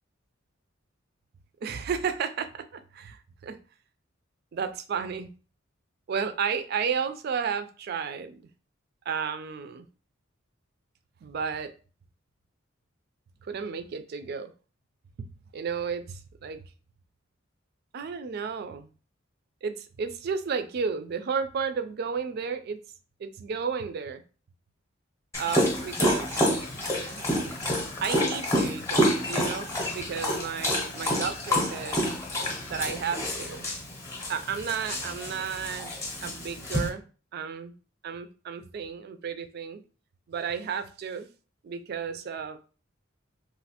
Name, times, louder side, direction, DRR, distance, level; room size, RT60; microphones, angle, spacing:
voice 1, 1.6-3.6 4.5-5.3 6.1-8.4 9.1-9.9 11.2-11.7 13.5-14.5 15.2-15.3 15.5-16.6 17.9-18.9 19.6-22.8 23.2-24.2 25.4-26.4 26.9-27.2 28.0-29.7 29.9-32.1 32.7-33.7 34.3-35.9 36.2-37.0 37.3-37.7 38.0-39.8 40.3-41.3 41.6-42.6, right 6 dB, 50° right, 10 dB, 0.3 m, -32 dB
Dog, 25.3-36.9, equal, 15° left, 0.7 m, -28 dB
3.1 x 2.4 x 2.8 m, 0.36 s
head